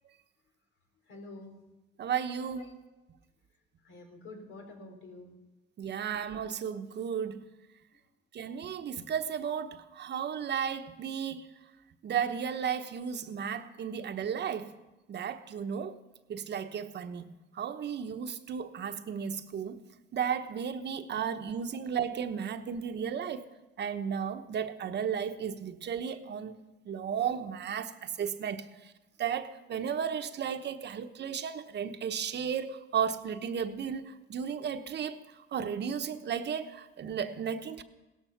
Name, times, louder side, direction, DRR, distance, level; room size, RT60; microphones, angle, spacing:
voice 1, 1.1-1.6 2.6-2.7 3.8-5.4, left 2 dB, 80° left, 3.9 m, -48 dB
voice 2, 2.0-2.7 5.8-7.5 8.3-11.5 12.0-14.7 15.1-16.0 16.3-19.8 20.1-23.5 23.8-26.5 26.9-28.7 29.2-37.8, right 7 dB, 60° right, 1.1 m, -34 dB
17.0 x 13.5 x 5.9 m
cardioid pair, 90°, 20 cm